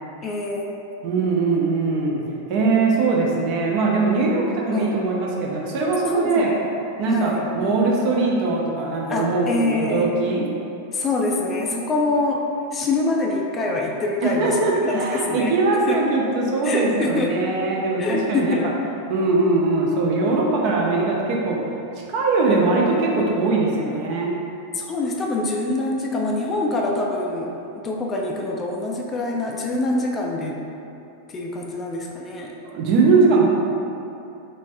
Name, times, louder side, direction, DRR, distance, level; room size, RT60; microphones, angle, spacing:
voice 1, 0.2-0.7 1.2-1.3 4.7-5.0 6.1-6.6 7.1-7.4 9.1-10.2 10.9-14.6 14.8-15.5 15.9-16.0 16.6-17.4 18.0-18.7 24.7-30.6 31.3-32.5, left 2 dB, 25° left, 0 dB, 0.3 m, -25 dB
voice 2, 1.0-2.2 2.5-6.5 7.0-10.5 14.2-18.6 19.1-21.6 22.1-24.3 32.6-33.4, right 3 dB, 45° right, -2 dB, 0.5 m, -21 dB
3.3 x 3.2 x 2.6 m, 2.8 s
figure-of-eight pair, 90°, 0 cm